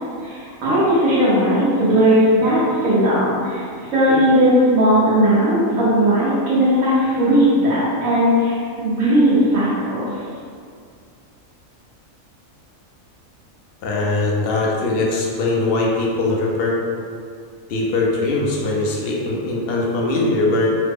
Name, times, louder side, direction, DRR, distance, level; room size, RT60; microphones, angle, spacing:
voice 1, 0.2-3.6 3.9-10.1, equal, 80° right, -11 dB, 1.2 m, -17 dB
voice 2, 13.8-16.8 17.7-20.7, left 2 dB, 60° left, -2 dB, 0.6 m, -21 dB
3.2 x 2.1 x 3.3 m, 2.2 s
omnidirectional pair, 1.4 m